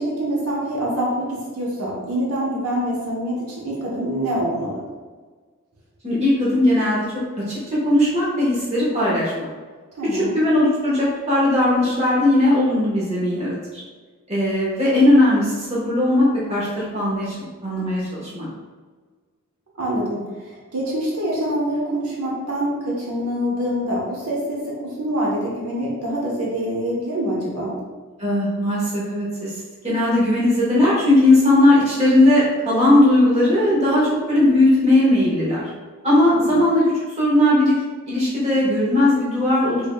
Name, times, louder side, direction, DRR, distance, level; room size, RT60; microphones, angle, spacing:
voice 1, 0.0-4.8 10.0-10.4 19.8-24.6 25.0-27.7 36.3-36.6, equal, 85° right, -4 dB, 0.9 m, -25 dB
voice 2, 6.0-7.0 7.4-9.5 10.0-13.8 14.3-17.3 17.6-18.5 28.2-29.5 29.8-35.7 36.0-37.8 38.1-39.9, left 1 dB, 30° right, -8 dB, 1.2 m, -18 dB
3.8 x 3.5 x 2.2 m, 1.4 s
head